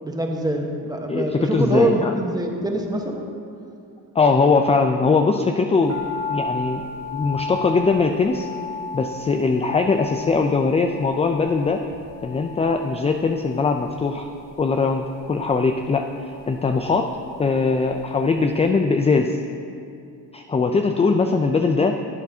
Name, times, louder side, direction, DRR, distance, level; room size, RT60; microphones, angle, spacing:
voice 1, 0.0-3.2 7.2-7.3, right 1 dB, 10° right, 1 dB, 1.1 m, -24 dB
voice 2, 1.1-2.1 4.1-6.0 6.3-6.8 7.1-8.5 8.9-11.8 12.2-14.3 14.6-17.1 17.4-19.4 20.3-22.0, left 4 dB, 15° left, 5 dB, 0.3 m, -21 dB
sound 1, 5.9-18.2 18.4-18.5, left 4 dB, 40° right, 2.0 m, -35 dB
11.5 x 8.4 x 2.7 m, 2.4 s
cardioid pair, 80°, 39 cm